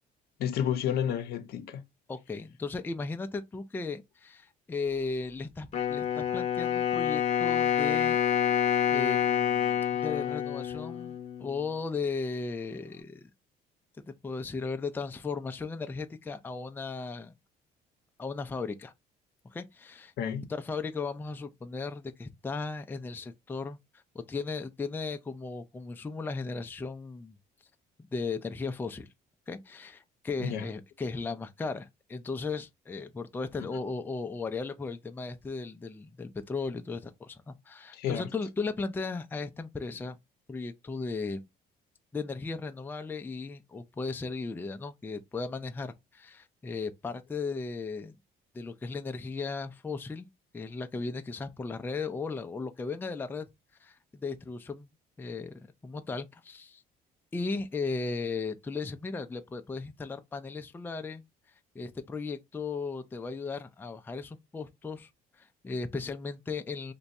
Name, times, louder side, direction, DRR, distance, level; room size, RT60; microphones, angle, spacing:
voice 1, 0.4-1.8 20.2-20.5 30.4-30.7 37.9-38.3, left 9 dB, 70° left, 0.6 m, -30 dB
voice 2, 2.1-8.2 8.9-13.3 14.1-17.3 18.2-18.9 19.5-20.1 20.5-27.4 28.1-29.1 29.5-40.2 40.5-41.4 42.1-48.2 48.5-50.3 50.5-53.5 53.8-54.9 55.2-56.8 57.3-61.2 61.7-65.1 65.4-66.9, left 4 dB, 10° left, 0.4 m, -36 dB
Wind instrument woodwind instrument, 5.7-11.7, left 9 dB, 45° left, 0.8 m, -28 dB
2.6 x 2.2 x 4.0 m
cardioid pair, 110°, 17 cm